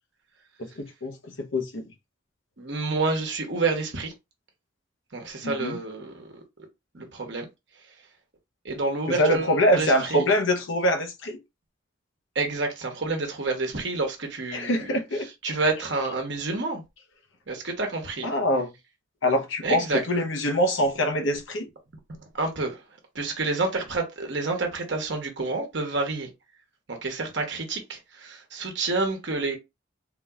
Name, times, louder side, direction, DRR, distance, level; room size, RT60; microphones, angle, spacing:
voice 1, 0.6-1.8 5.4-5.8 9.2-11.4 14.5-15.5 18.2-18.7 19.2-21.7, equal, 70° left, 0.9 m, -24 dB
voice 2, 2.6-4.1 5.1-6.4 6.9-7.5 8.6-10.2 12.3-15.0 15.4-16.8 17.5-18.3 19.6-20.0 22.2-22.8 23.1-26.3 26.9-29.6, right 3 dB, 60° right, 1.0 m, -29 dB
3.8 x 2.8 x 2.4 m
head